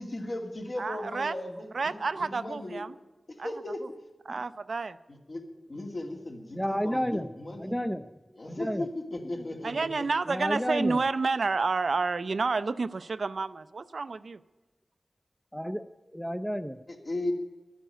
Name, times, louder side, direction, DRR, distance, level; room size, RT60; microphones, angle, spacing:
voice 1, 0.0-2.8 3.4-3.8 4.3-4.4 5.3-5.4 5.7-7.7 8.4-10.1 16.9-17.3, left 1 dB, 55° left, 2 dB, 2.4 m, -36 dB
voice 2, 0.8-1.4 1.7-2.9 3.4-3.5 3.8-3.9 4.3-5.0 9.6-14.4, right 4 dB, 75° right, 13 dB, 0.5 m, -30 dB
voice 3, 6.5-7.3 7.6-8.1 8.5-8.9 10.3-11.0 15.5-16.8, equal, 5° left, 10 dB, 0.5 m, -31 dB
12.5 x 9.3 x 9.0 m, 1.2 s
wide cardioid pair, 65°, 0 cm